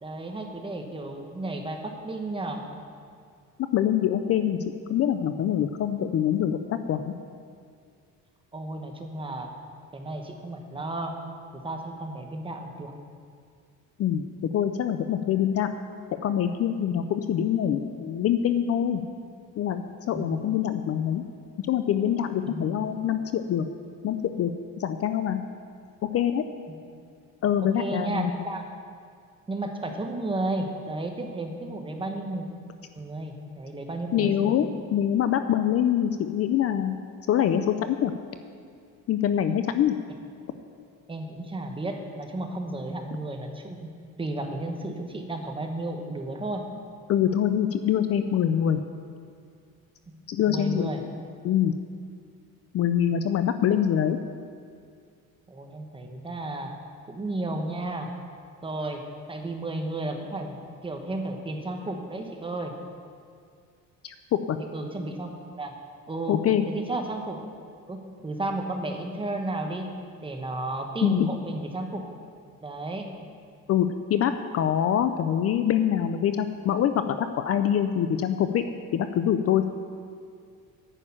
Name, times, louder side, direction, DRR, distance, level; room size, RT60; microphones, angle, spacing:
voice 1, 0.0-2.6 8.5-9.5 9.9-11.2 11.5-12.9 20.1-20.4 22.5-22.9 26.7-26.8 27.6-28.7 29.5-32.5 32.9-34.5 41.1-43.9 44.2-46.7 50.1-51.0 55.5-56.7 57.1-58.1 58.6-59.0 59.3-60.6 60.8-62.7 64.7-65.7 66.1-66.4 66.7-67.4 67.9-69.9 70.2-72.2 72.6-73.1, right 2 dB, 15° right, 3 dB, 1.1 m, -33 dB
voice 2, 3.7-7.1 14.0-14.2 14.5-15.7 16.2-19.0 19.6-21.2 21.7-23.6 24.0-25.4 26.1-26.4 27.4-28.3 34.1-37.0 37.3-38.1 39.1-39.9 47.1-48.8 50.3-51.1 51.4-51.7 52.7-54.2 64.0-64.6 66.3-66.7 71.0-71.3 73.7-78.6 78.9-79.7, left 9 dB, 45° left, 9 dB, 0.5 m, -25 dB
10.0 x 6.5 x 8.6 m, 2.2 s
cardioid pair, 130°, 33 cm